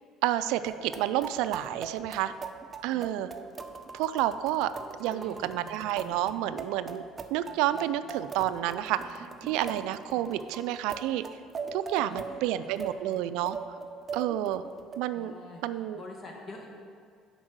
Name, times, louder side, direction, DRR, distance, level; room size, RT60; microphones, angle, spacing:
voice 1, 0.2-2.3 2.8-3.3 3.9-4.7 5.0-7.0 7.3-11.2 11.7-13.6 14.1-14.6 15.0-15.3 15.6-16.0, right 13 dB, 80° right, 13 dB, 0.3 m, -30 dB
sound 1, 0.6-15.0, right 5 dB, 30° right, 0.6 m, -41 dB
voice 2, 5.0-6.4 12.0-13.2 15.2-15.6 16.0-16.7, left 1 dB, 35° left, 0 dB, 1.7 m, -47 dB
7.3 x 5.3 x 6.3 m, 2.1 s
supercardioid pair, 95°, 0 cm